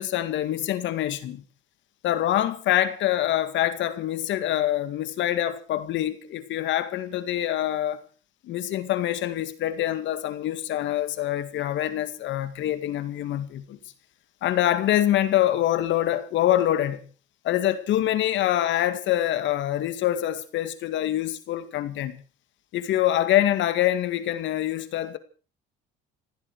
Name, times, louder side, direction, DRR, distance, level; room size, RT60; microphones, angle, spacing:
voice 1, 0.0-1.4 2.0-8.0 8.4-13.8 14.4-17.0 17.4-22.2 22.7-25.2, left 12 dB, 65° left, 2.1 m, -25 dB
19.0 x 16.0 x 4.8 m
cardioid pair, 105°, 21 cm